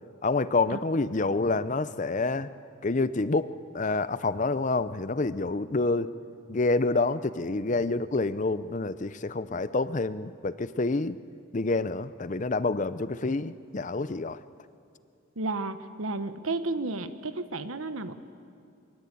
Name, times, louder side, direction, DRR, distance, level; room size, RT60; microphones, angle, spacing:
voice 1, 0.2-2.5 2.8-3.5 3.7-6.1 6.5-11.2 11.5-14.4, left 3 dB, 35° left, 14 dB, 0.6 m, -27 dB
voice 2, 15.4-18.1, right 2 dB, 80° right, 11 dB, 1.2 m, -32 dB
23.5 x 22.5 x 8.5 m, 2.5 s
head